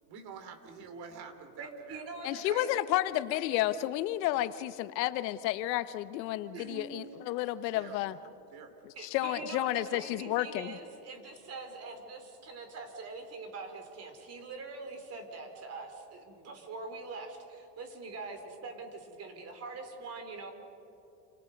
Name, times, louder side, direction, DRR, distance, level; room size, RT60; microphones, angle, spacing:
voice 1, 0.1-2.4 7.7-8.7, right 5 dB, 50° right, 8 dB, 2.9 m, -48 dB
voice 2, 1.6-2.7 4.3-4.4 6.5-7.0 7.4-7.5 9.0-20.5, right 3 dB, 30° right, 5 dB, 3.8 m, -43 dB
voice 3, 2.2-8.2 8.8-10.8, left 14 dB, 85° left, 13 dB, 1.1 m, -31 dB
29.0 x 26.5 x 5.3 m, 2.7 s
supercardioid pair, 145°, 50 cm